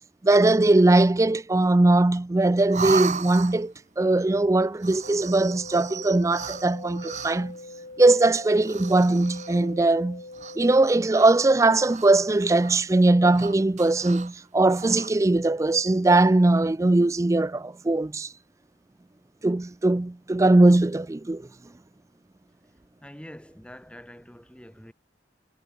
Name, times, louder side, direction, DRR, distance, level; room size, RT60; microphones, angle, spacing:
voice 1, 0.2-7.6 8.0-10.2 10.6-18.3 19.4-21.5, right 2 dB, 20° right, 0.4 m, -20 dB
sound 1, 2.7-3.8 4.7-7.6 8.6-9.7 10.3-10.8 11.1-12.3 12.6-12.8 13.3-14.3 14.7-15.1, right 6 dB, 45° right, 1.2 m, -36 dB
sound 2, 5.0-11.0, left 2 dB, 70° left, 1.7 m, -43 dB
voice 2, 23.0-24.9, equal, 5° left, 2.1 m, -45 dB
head